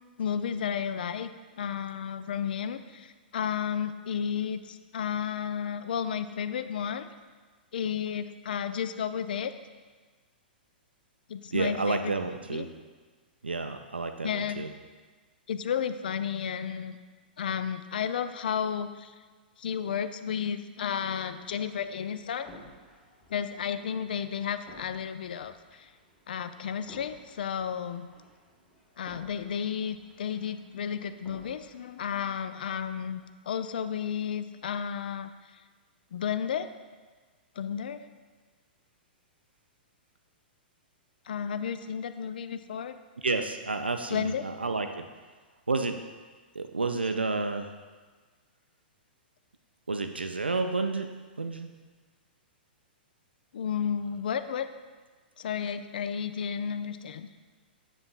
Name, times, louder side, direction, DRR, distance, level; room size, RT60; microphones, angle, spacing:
voice 1, 0.2-1.3 1.6-7.1 7.7-9.5 11.3-12.7 14.2-14.6 15.5-17.0 17.4-19.1 19.6-22.5 23.3-25.9 26.3-28.1 29.0-35.3 36.1-36.7 37.6-38.0 41.3-43.0 44.1-44.4 53.5-54.7 55.4-57.3, left 8 dB, 60° left, 11 dB, 0.3 m, -32 dB
voice 2, 11.5-12.7 13.4-14.7 43.2-45.1 45.7-46.0 46.5-47.7 49.9-51.1 51.4-51.7, right 3 dB, 85° right, 6 dB, 0.4 m, -30 dB
sound 1, 21.1-33.3, equal, 5° left, 1.5 m, -56 dB
7.7 x 6.9 x 2.4 m, 1.4 s
figure-of-eight pair, 105°, 6 cm